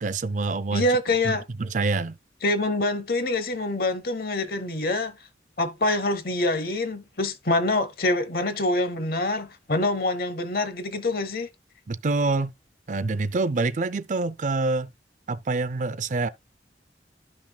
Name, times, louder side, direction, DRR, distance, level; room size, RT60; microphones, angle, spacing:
voice 1, 0.0-2.2 11.9-12.5 12.9-14.9 15.3-16.3, right 3 dB, 45° right, 0.4 m, -26 dB
voice 2, 0.7-1.4 2.4-5.2 5.6-11.5, left 2 dB, 55° left, 0.9 m, -25 dB
12.0 x 5.8 x 2.2 m
head